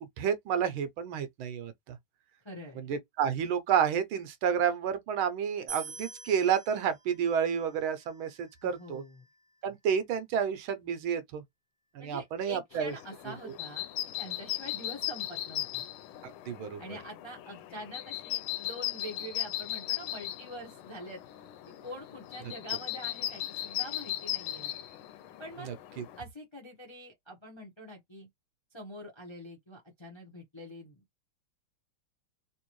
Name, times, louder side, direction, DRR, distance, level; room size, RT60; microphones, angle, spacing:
voice 1, 0.0-2.0 2.8-9.0 9.6-11.4 11.9-12.9 16.2-17.0 25.7-26.0, right 8 dB, 80° right, 1.5 m, -30 dB
voice 2, 2.4-2.9 8.6-9.2 12.0-13.9 14.2-15.9 16.8-21.2 21.7-24.7 25.4-25.7 26.2-28.3 28.7-31.2, equal, 25° left, 0.7 m, -45 dB
sound 1, 5.7-8.9, right 6 dB, 35° right, 1.0 m, -46 dB
sound 2, 12.7-26.2, left 13 dB, 90° left, 1.5 m, -38 dB
3.4 x 3.0 x 3.0 m
omnidirectional pair, 2.2 m